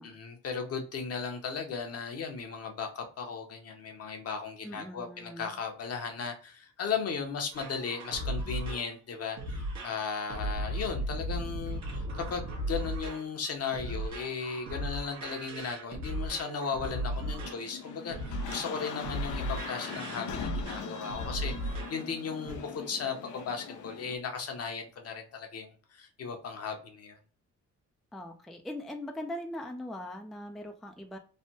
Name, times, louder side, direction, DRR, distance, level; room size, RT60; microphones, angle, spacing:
voice 1, 0.0-21.5 21.9-27.2, left 5 dB, 55° left, 0.9 m, -36 dB
voice 2, 4.6-5.6 28.1-31.2, left 1 dB, ahead, 0.4 m, -41 dB
sound 1, 7.5-22.1 22.5-22.6, right 1 dB, 65° right, 1.1 m, -36 dB
sound 2, 17.2-24.2, left 7 dB, 75° left, 0.6 m, -41 dB
3.3 x 2.1 x 2.7 m
cardioid pair, 90°, 30 cm